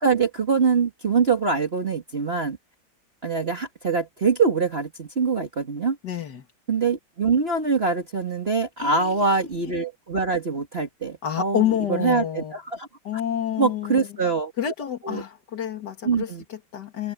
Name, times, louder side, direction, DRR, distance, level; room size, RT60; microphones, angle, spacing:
voice 1, 0.0-2.6 3.2-6.0 6.7-12.9 13.6-14.5 15.0-15.2 16.0-16.4, right 5 dB, 30° right, 1.9 m, -24 dB
voice 2, 6.0-6.4 8.8-9.3 11.2-12.5 13.0-14.1 14.6-17.1, left 9 dB, 60° left, 2.5 m, -28 dB
omnidirectional pair, 2.1 m